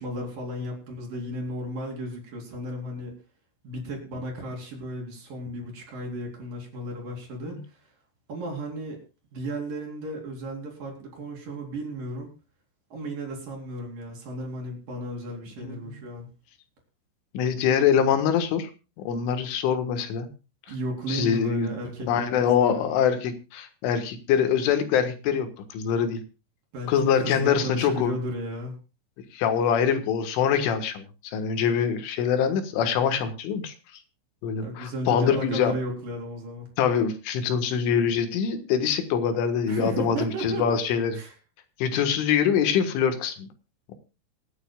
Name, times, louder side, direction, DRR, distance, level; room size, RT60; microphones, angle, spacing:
voice 1, 0.0-3.2 3.6-7.8 8.3-9.0 9.3-12.3 12.9-16.3 20.7-22.9 26.7-28.8 34.6-36.7 39.7-40.8 41.1-41.3 42.0-42.1, equal, 45° right, 0 dB, 5.4 m, -34 dB
voice 2, 15.6-16.0 17.3-18.7 19.1-20.3 21.1-21.7 22.1-26.2 26.9-28.1 29.3-33.7 34.4-35.7 36.8-41.2 41.8-43.5, left 7 dB, 80° left, 9 dB, 3.9 m, -24 dB
27.0 x 9.6 x 2.3 m, 0.31 s
omnidirectional pair, 5.6 m